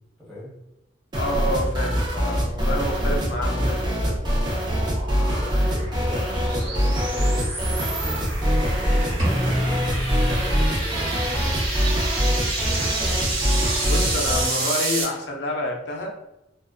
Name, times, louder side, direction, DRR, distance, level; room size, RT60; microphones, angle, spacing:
voice 1, 0.2-0.5 2.8-3.0 5.1-9.6 10.0-11.6 12.2-13.2, left 1 dB, ahead, -9 dB, 1.2 m, -40 dB
voice 2, 1.1-4.2 13.8-16.1, left 1 dB, 60° left, 1 dB, 0.5 m, -28 dB
sound 1, 1.1-14.5, equal, 20° right, 0.4 m, -24 dB
sound 2, 3.7-15.0, right 3 dB, 90° right, 0.7 m, -30 dB
sound 3, 9.2-11.2, equal, 45° right, 1.1 m, -27 dB
2.3 x 2.2 x 2.4 m, 0.88 s
head